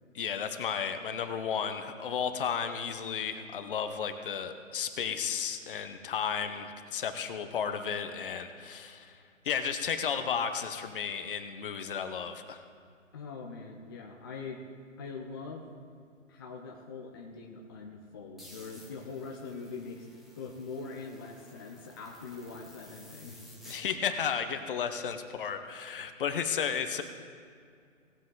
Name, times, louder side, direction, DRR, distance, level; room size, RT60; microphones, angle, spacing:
voice 1, 0.1-9.2 9.4-12.6 23.7-27.0, left 7 dB, 45° left, 8 dB, 0.9 m, -33 dB
voice 2, 13.1-14.6 15.0-15.7 16.3-23.7, left 4 dB, 20° left, 0 dB, 0.5 m, -43 dB
sound 1, 18.4-23.8, equal, ahead, 1.1 m, -54 dB
18.0 x 7.3 x 3.9 m, 2.2 s
figure-of-eight pair, 140°, 39 cm